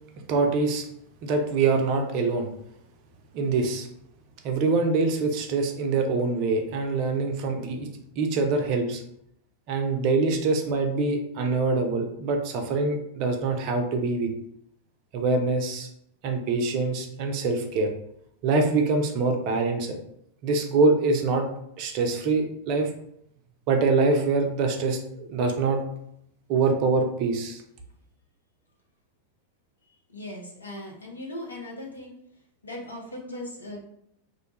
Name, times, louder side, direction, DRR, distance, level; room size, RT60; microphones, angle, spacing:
voice 1, 0.3-0.8 1.2-2.5 3.3-3.9 4.4-7.9 8.2-9.0 9.7-14.3 15.1-15.9 16.2-17.9 18.4-20.0 20.4-21.5 21.8-22.9 23.7-25.8 26.5-27.6, right 3 dB, 45° right, 4 dB, 0.4 m, -24 dB
voice 2, 30.1-32.2 32.6-33.8, left 1 dB, 80° left, -1 dB, 0.6 m, -38 dB
2.4 x 2.2 x 2.8 m, 0.73 s
figure-of-eight pair, 90°, 0 cm